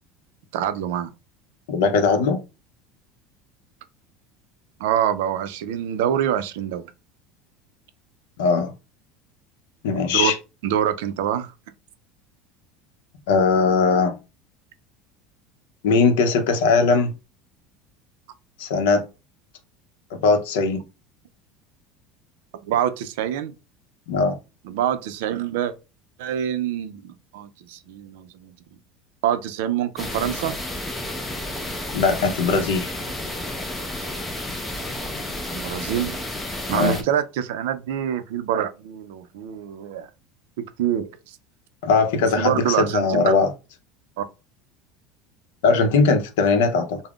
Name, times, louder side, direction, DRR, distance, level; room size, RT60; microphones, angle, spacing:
voice 1, 0.5-1.1 4.8-6.8 10.0-10.3 10.6-11.5 22.6-23.5 24.6-25.7 26.2-28.5 29.2-30.6 35.5-36.2 36.7-40.1 40.6-41.4 42.4-43.3 44.2-44.3, right 10 dB, 75° right, 0.4 m, -25 dB
voice 2, 1.7-2.4 8.4-8.7 9.8-10.3 13.3-14.1 15.8-17.1 18.6-19.1 20.1-20.8 24.1-24.4 31.9-32.9 36.7-37.0 41.8-43.5 45.6-47.0, left 4 dB, 90° left, 0.6 m, -19 dB
sound 1, 30.0-37.0, left 1 dB, 10° left, 0.4 m, -31 dB
2.3 x 2.0 x 3.5 m
cardioid pair, 180°, 0 cm